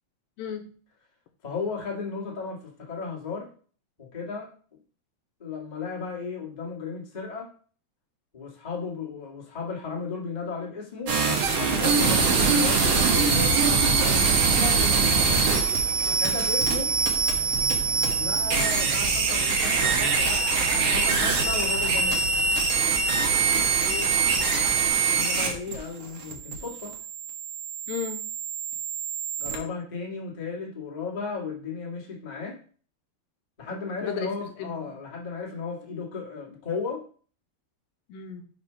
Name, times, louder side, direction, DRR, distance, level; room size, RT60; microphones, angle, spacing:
voice 1, 1.4-3.5 4.0-4.5 5.4-7.5 8.3-13.6 16.1-16.9 18.1-22.2 25.0-26.9 29.4-32.6 33.6-37.0, left 4 dB, 35° left, -3 dB, 0.6 m, -35 dB
sound 1, 11.1-29.6, right 4 dB, 60° right, 1.6 m, -23 dB
Bird, 13.9-24.9, right 5 dB, 85° right, 2.6 m, -36 dB
voice 2, 23.5-24.1 27.9-28.3 34.0-34.3 34.6-34.9 38.1-38.4, left 8 dB, 80° left, 6 dB, 2.2 m, -34 dB
5.2 x 4.9 x 5.6 m, 0.44 s
omnidirectional pair, 4.3 m